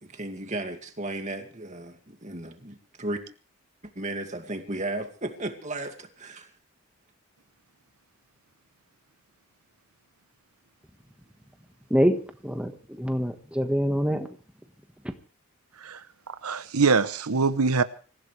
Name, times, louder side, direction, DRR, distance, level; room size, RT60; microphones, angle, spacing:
voice 1, 0.0-3.2 4.0-6.5, right 2 dB, 30° right, 2.3 m, -34 dB
voice 2, 11.9-14.3, equal, 5° right, 1.4 m, -25 dB
voice 3, 16.4-17.8, right 4 dB, 85° right, 0.9 m, -23 dB
25.5 x 15.5 x 3.4 m
head